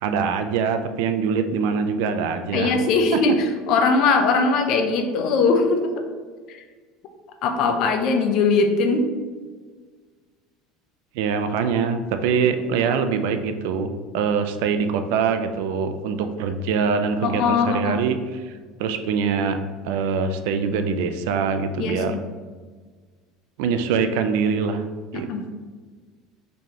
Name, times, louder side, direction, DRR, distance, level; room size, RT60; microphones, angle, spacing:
voice 1, 0.0-2.7 11.2-18.2 18.5-19.6 19.8-22.1 23.6-24.8 25.1-25.3, right 6 dB, 70° right, 8 dB, 0.4 m, -23 dB
voice 2, 2.5-5.9 6.5-6.6 7.4-9.1 17.2-18.0 21.8-22.2 25.1-25.4, left 4 dB, 45° left, 5 dB, 0.5 m, -20 dB
4.1 x 3.2 x 2.8 m, 1.5 s
cardioid pair, 175°, 0 cm